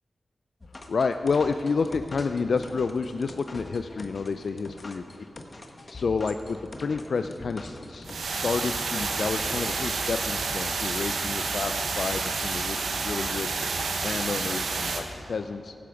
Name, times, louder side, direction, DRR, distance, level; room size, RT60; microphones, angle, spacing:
sound 1, 0.6-9.6, left 2 dB, 45° left, 1.4 m, -43 dB
voice 1, 0.9-5.0 5.9-13.7 14.0-15.7, left 4 dB, 70° left, 8 dB, 0.4 m, -30 dB
sound 2, 8.0-15.0, right 4 dB, 85° right, 1.1 m, -29 dB
15.0 x 8.5 x 5.9 m, 2.7 s
cardioid pair, 40°, 0 cm